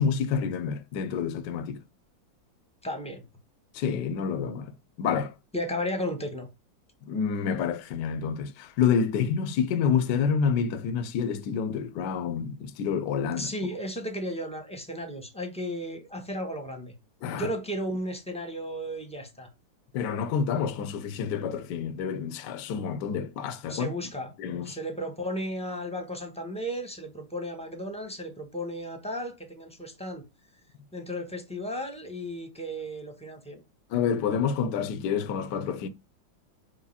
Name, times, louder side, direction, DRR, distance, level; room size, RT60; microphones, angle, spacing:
voice 1, 0.0-1.8 3.7-5.3 7.1-13.5 17.2-17.5 19.9-23.9 24.4-24.8 33.9-35.9, left 7 dB, 65° left, 1.3 m, -28 dB
voice 2, 2.8-3.2 5.5-6.5 13.4-16.9 17.3-19.5 23.7-24.3 24.6-30.2 30.9-33.6, equal, 5° left, 1.1 m, -34 dB
5.3 x 4.9 x 4.2 m
omnidirectional pair, 2.1 m